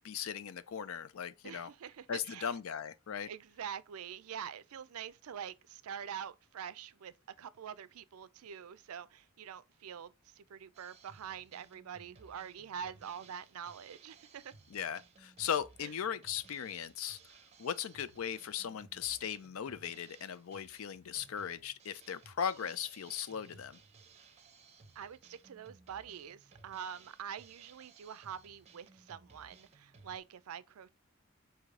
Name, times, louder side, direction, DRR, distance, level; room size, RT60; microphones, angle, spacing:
voice 1, 0.0-1.7 2.1-3.3 14.7-17.2 17.6-23.8, left 8 dB, 70° left, 0.4 m, -38 dB
voice 2, 1.4-2.5 3.3-14.5 25.0-30.9, right 8 dB, 85° right, 0.4 m, -45 dB
Drum kit, 10.7-30.2, right 4 dB, 30° right, 0.6 m, -60 dB
4.8 x 2.7 x 3.6 m
head